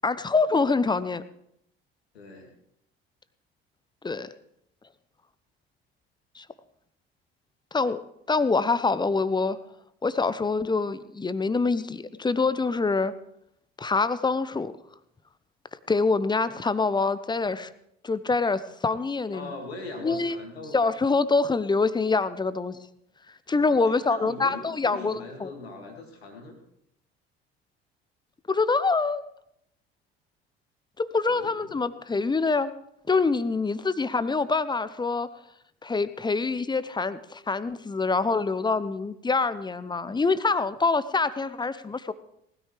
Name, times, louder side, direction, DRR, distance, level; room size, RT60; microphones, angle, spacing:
voice 1, 0.0-1.2 4.0-4.3 6.3-6.4 7.7-8.0 8.3-9.6 10.0-13.1 13.8-14.7 15.9-17.7 18.0-19.5 20.0-20.4 20.7-22.8 23.5-25.5 28.5-29.2 31.0-32.7 33.1-35.3 35.8-42.1, left 4 dB, 15° left, 15 dB, 0.7 m, -25 dB
voice 2, 2.1-2.5 19.3-20.8 23.7-26.6 31.3-31.9, left 2 dB, 75° left, 3 dB, 2.3 m, -41 dB
19.5 x 13.0 x 3.4 m, 0.75 s
figure-of-eight pair, 55°, 31 cm